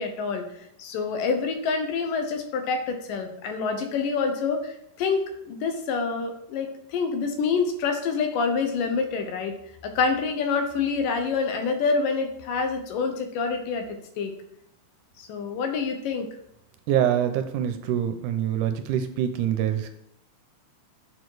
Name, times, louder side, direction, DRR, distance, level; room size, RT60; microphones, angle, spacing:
voice 1, 0.0-9.5 9.8-14.3 15.2-16.3, left 5 dB, 85° left, 6 dB, 2.7 m, -27 dB
voice 2, 16.9-19.9, right 10 dB, 80° right, 8 dB, 2.1 m, -25 dB
7.0 x 6.2 x 4.8 m, 0.76 s
omnidirectional pair, 3.7 m